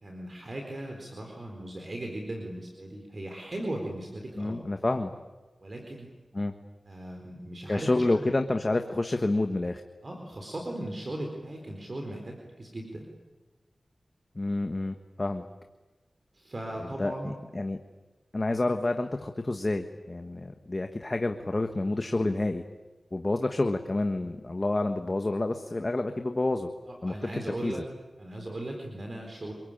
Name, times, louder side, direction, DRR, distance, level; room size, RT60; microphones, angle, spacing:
voice 1, 0.0-4.6 5.6-6.1 6.8-7.9 8.1-8.3 10.0-13.0 16.3-17.3 26.9-27.8 28.2-29.5, right 1 dB, 40° right, 2 dB, 4.3 m, -38 dB
voice 2, 4.4-5.1 6.3-6.5 7.7-9.8 14.3-15.5 16.8-17.8 18.3-22.6 23.1-26.7 27.0-27.1 27.5-27.8, left 2 dB, 30° left, 6 dB, 1.4 m, -29 dB
27.5 x 23.5 x 9.1 m, 1.2 s
wide cardioid pair, 85°, 0 cm